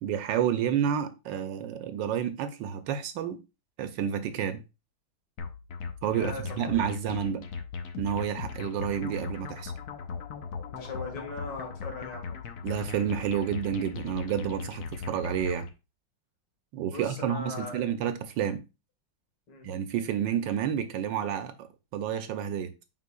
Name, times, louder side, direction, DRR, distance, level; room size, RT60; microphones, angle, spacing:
voice 1, 0.0-3.4 3.8-4.6 6.0-7.4 8.0-9.7 12.6-15.7 16.7-18.6 19.6-22.7, right 8 dB, 75° right, 1.2 m, -30 dB
sound 1, 5.4-15.7, left 5 dB, 60° left, 1.1 m, -38 dB
voice 2, 6.1-6.7 10.7-12.4 16.9-17.9 19.5-19.7, left 3 dB, 80° left, 2.6 m, -39 dB
7.6 x 5.7 x 2.3 m
omnidirectional pair, 2.2 m